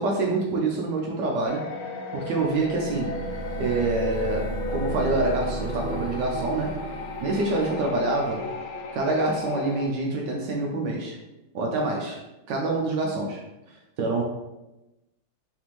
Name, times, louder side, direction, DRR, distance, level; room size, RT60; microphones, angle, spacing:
voice 1, 0.0-1.6 2.1-3.2 3.6-6.7 7.2-8.5 8.9-11.2 11.5-12.2 12.5-13.4 14.0-14.2, right 2 dB, 70° right, -1 dB, 1.1 m, -26 dB
sound 1, 1.5-9.9, left 3 dB, 80° left, 0.9 m, -35 dB
sound 2, 2.4-9.1, right 2 dB, 55° left, 1.4 m, -35 dB
4.2 x 3.4 x 3.0 m, 0.99 s
omnidirectional pair, 2.4 m